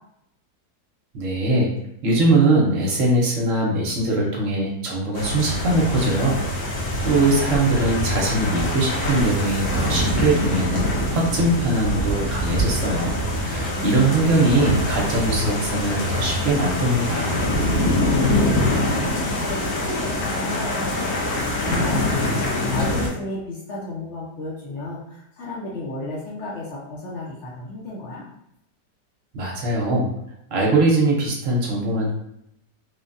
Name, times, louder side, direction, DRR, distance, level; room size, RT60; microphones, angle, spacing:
voice 1, 1.1-1.7 2.0-6.4 6.7-10.8 11.1-17.3 29.3-30.1 30.5-32.1, right 2 dB, 60° right, -2 dB, 0.9 m, -21 dB
sound 1, 5.1-23.1, left 1 dB, 80° left, 1.3 m, -24 dB
voice 2, 13.4-14.0 18.0-28.2, left 2 dB, 60° left, -5 dB, 0.8 m, -34 dB
3.3 x 2.1 x 2.5 m, 0.79 s
omnidirectional pair, 1.8 m